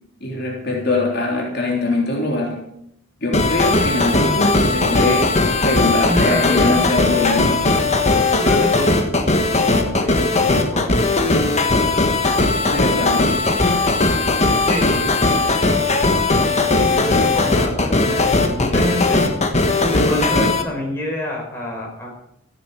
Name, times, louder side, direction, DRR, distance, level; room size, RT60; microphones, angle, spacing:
voice 1, 0.2-2.6 3.2-5.3 5.6-7.5 12.7-13.3, left 2 dB, 50° left, -1 dB, 3.4 m, -22 dB
sound 1, 3.3-20.6, left 3 dB, 35° left, 1.4 m, -18 dB
voice 2, 6.0-6.8 7.1-7.2 8.3-8.9 9.7-11.0 14.6-15.1 16.8-19.2 19.9-22.1, equal, 10° left, -2 dB, 4.8 m, -26 dB
14.5 x 9.8 x 7.3 m, 0.77 s
head